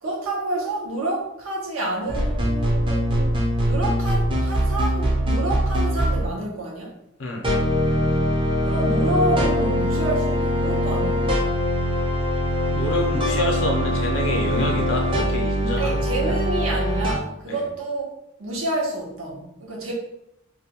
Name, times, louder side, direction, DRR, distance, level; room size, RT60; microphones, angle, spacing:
voice 1, 0.0-3.4 3.7-6.9 8.6-11.4 15.8-18.1 18.4-19.9, right 1 dB, 80° right, -2 dB, 0.8 m, -28 dB
sound 1, 2.1-6.3 7.4-17.1, equal, 25° right, 0.5 m, -22 dB
voice 2, 12.7-16.3 17.5-17.6, left 1 dB, 65° left, 0 dB, 0.6 m, -27 dB
2.6 x 2.2 x 2.8 m, 0.82 s
head